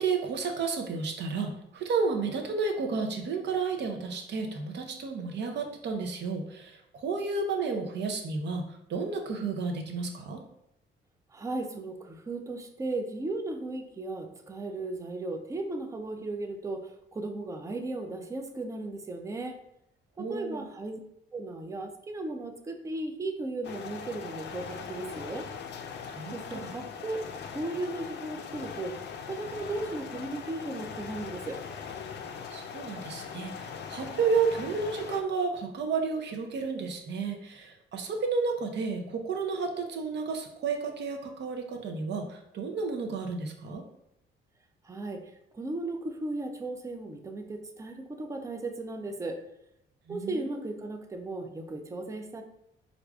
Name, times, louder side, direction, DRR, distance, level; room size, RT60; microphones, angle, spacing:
voice 1, 0.0-10.4 20.2-20.7 26.1-26.7 32.5-43.8 50.1-50.6, right 4 dB, 60° right, 4 dB, 0.6 m, -32 dB
voice 2, 11.3-16.9 17.1-19.6 20.2-21.0 21.3-25.5 26.3-27.2 27.5-29.0 29.3-31.6 44.9-45.2 45.5-49.4 50.1-52.4, right 2 dB, 15° right, 5 dB, 0.4 m, -36 dB
sound 1, 23.6-35.2, left 6 dB, 60° left, 0.4 m, -40 dB
4.6 x 2.5 x 2.3 m, 0.80 s
cardioid pair, 90°, 20 cm